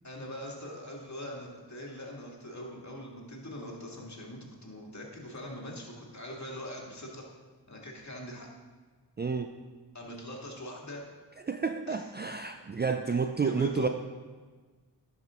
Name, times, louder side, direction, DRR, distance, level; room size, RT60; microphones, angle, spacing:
voice 1, 0.0-7.2 7.7-8.5 9.9-11.1 11.9-12.1 13.1-13.9, equal, 40° left, -1 dB, 2.1 m, -42 dB
voice 2, 9.2-9.5 11.5-13.9, right 5 dB, 25° right, 7 dB, 0.4 m, -30 dB
11.0 x 5.8 x 3.7 m, 1.4 s
cardioid pair, 45°, 42 cm